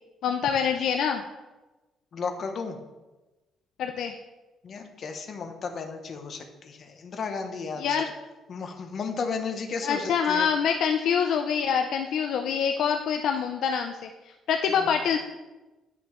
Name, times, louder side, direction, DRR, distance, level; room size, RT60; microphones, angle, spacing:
voice 1, 0.2-1.2 3.8-4.2 7.8-8.1 9.8-13.9 14.5-15.2, left 7 dB, 60° left, 4 dB, 0.4 m, -25 dB
voice 2, 2.1-2.8 4.6-7.9 8.5-10.5 14.7-15.0, left 5 dB, 40° left, 5 dB, 0.8 m, -34 dB
10.0 x 5.9 x 3.1 m, 1.1 s
cardioid pair, 175°, 0 cm